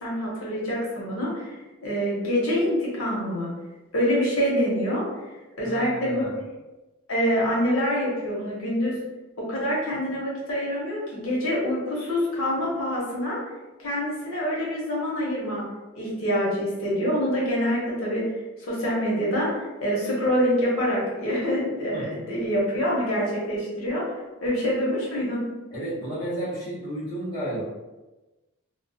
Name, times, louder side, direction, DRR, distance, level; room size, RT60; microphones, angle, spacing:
voice 1, 0.0-3.5 3.9-5.0 5.6-6.2 7.1-9.0 9.4-13.4 13.8-15.6 15.9-18.3 18.6-24.0 24.4-25.4, equal, 75° left, -5 dB, 0.8 m, -26 dB
voice 2, 5.6-6.4 21.9-22.1 25.7-27.7, right 1 dB, 20° left, -11 dB, 0.8 m, -32 dB
2.3 x 2.2 x 2.6 m, 1.1 s
head